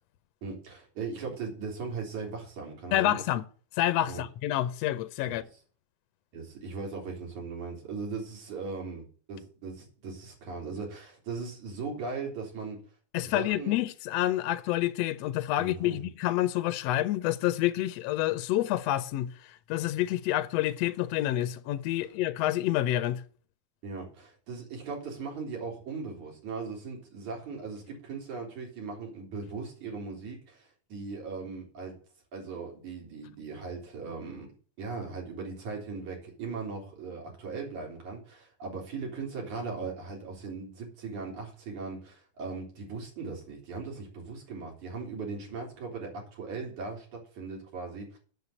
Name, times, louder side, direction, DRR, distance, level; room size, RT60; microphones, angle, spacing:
voice 1, 0.4-3.2 4.1-4.2 5.3-5.4 6.3-12.8 13.2-13.8 15.6-16.1 23.8-32.0 32.3-34.5 34.8-48.2, right 4 dB, 85° right, 4.9 m, -38 dB
voice 2, 2.9-3.4 3.8-5.4 13.1-23.2, left 14 dB, 75° left, 1.7 m, -28 dB
8.3 x 6.5 x 8.2 m
omnidirectional pair, 3.3 m